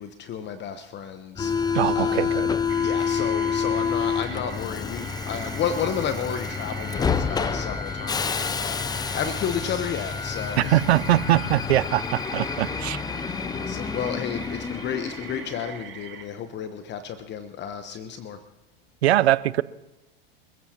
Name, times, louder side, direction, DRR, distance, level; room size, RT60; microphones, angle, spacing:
voice 1, 0.0-2.4 2.8-11.1 13.4-18.4, left 7 dB, 35° left, 1.0 m, -32 dB
Subway metro underground, 1.4-15.7, left 6 dB, 15° left, 0.5 m, -28 dB
voice 2, 1.7-2.6 10.6-13.0 19.0-19.6, right 14 dB, 80° right, 0.6 m, -22 dB
sound 1, 2.7-16.3, right 8 dB, 65° right, 4.6 m, -43 dB
27.5 x 15.5 x 2.9 m
hypercardioid pair, 95°, 31 cm